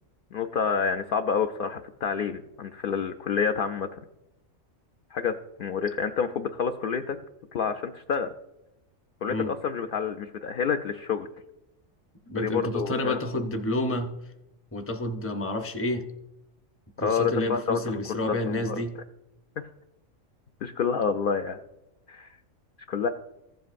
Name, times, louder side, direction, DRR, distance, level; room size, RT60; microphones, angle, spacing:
voice 1, 0.3-4.0 5.1-5.3 5.6-7.2 7.5-8.3 9.2-11.3 12.4-13.2 17.0-18.8 19.6-19.7 20.6-21.6 22.1-22.3 22.9-23.1, left 6 dB, 65° left, 6 dB, 0.5 m, -28 dB
voice 2, 12.3-14.2 14.7-16.1 17.0-18.9, left 1 dB, 15° left, 5 dB, 0.5 m, -29 dB
15.0 x 7.7 x 2.5 m, 0.91 s
omnidirectional pair, 1.4 m